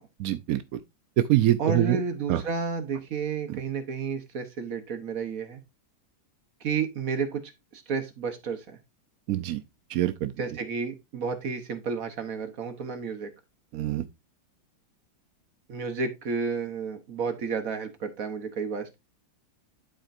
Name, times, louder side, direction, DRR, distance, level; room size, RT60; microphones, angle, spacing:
voice 1, 0.2-0.8 1.2-2.0 2.3-2.4 9.3-9.6 9.9-10.3 13.7-14.0, right 13 dB, 80° right, 0.8 m, -24 dB
voice 2, 1.6-5.6 6.6-8.8 10.4-13.3 15.7-19.0, right 5 dB, 55° right, 1.2 m, -31 dB
11.5 x 4.4 x 2.5 m
omnidirectional pair, 2.0 m